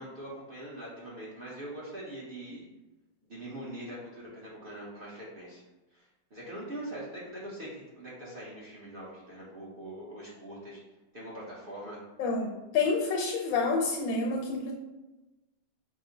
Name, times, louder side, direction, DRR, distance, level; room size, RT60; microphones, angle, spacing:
voice 1, 0.0-2.6 3.3-5.6 5.9-10.8 11.1-12.0, right 1 dB, 50° right, -6 dB, 0.7 m, -42 dB
voice 2, 12.2-14.7, left 4 dB, 90° left, -1 dB, 1.5 m, -28 dB
5.2 x 2.1 x 3.9 m, 1.1 s
omnidirectional pair, 2.1 m